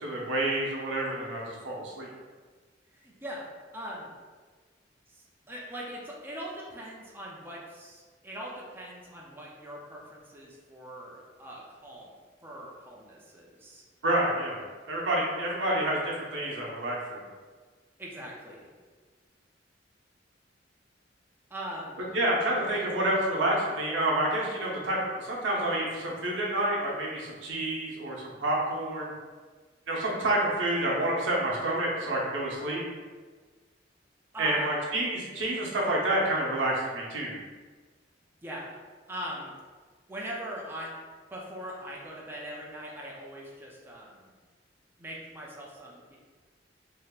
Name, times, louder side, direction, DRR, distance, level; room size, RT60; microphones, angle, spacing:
voice 1, 0.0-2.1 14.0-14.6 14.9-17.2 22.1-29.1 29.9-32.8 34.4-37.3, right 1 dB, 85° right, -4 dB, 0.8 m, -28 dB
voice 2, 2.9-3.5 3.7-4.1 5.1-12.1 12.4-13.8 18.0-18.7 21.5-22.0 34.3-34.7 38.4-38.8 39.1-39.5 40.1-40.9 41.3-44.3 45.0-46.2, equal, 10° right, -4 dB, 0.4 m, -41 dB
3.5 x 2.7 x 2.3 m, 1.4 s
head